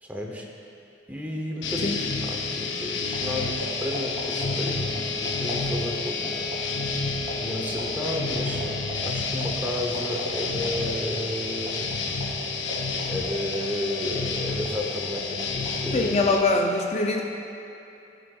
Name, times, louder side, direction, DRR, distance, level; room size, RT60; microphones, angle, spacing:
voice 1, 0.0-0.5 1.1-6.5 6.9-11.9 13.1-16.2, left 1 dB, 10° right, -1 dB, 0.7 m, -33 dB
sound 1, 1.6-16.4, left 4 dB, 85° left, 0.7 m, -30 dB
sound 2, 3.0-16.4, right 2 dB, 30° right, 2.0 m, -37 dB
voice 2, 15.9-17.2, left 2 dB, 35° left, 2 dB, 0.3 m, -23 dB
14.5 x 7.3 x 2.3 m, 2.8 s
head